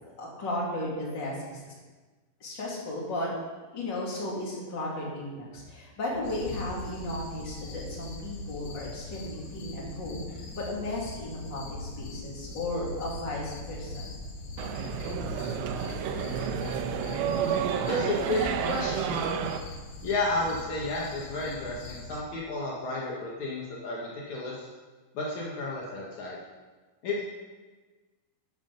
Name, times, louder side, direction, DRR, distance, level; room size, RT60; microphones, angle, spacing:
voice 1, 0.2-1.6 2.4-3.3 3.7-14.1, left 1 dB, 30° left, -5 dB, 2.2 m, -35 dB
sound 1, 6.2-22.2, left 2 dB, 65° left, 2.6 m, -41 dB
sound 2, 14.6-19.6, right 8 dB, 85° right, 3.1 m, -30 dB
voice 2, 17.9-19.3 20.0-24.7 25.1-26.4 27.0-27.2, left 2 dB, 80° left, -4 dB, 1.6 m, -32 dB
13.0 x 7.4 x 5.4 m, 1.3 s
omnidirectional pair, 5.9 m